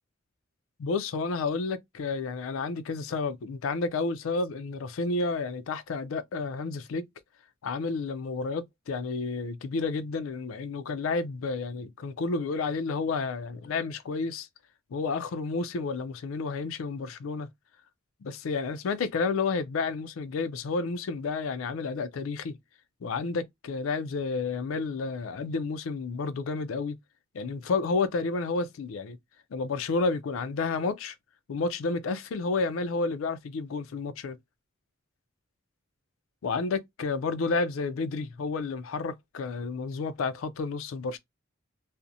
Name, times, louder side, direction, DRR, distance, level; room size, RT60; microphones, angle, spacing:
voice 1, 0.8-7.0 7.6-14.5 14.9-17.5 18.2-22.6 23.0-27.0 27.3-29.2 29.5-31.2 31.5-34.4 36.4-41.2, left 4 dB, 80° left, 0.4 m, -31 dB
2.4 x 2.0 x 2.6 m
head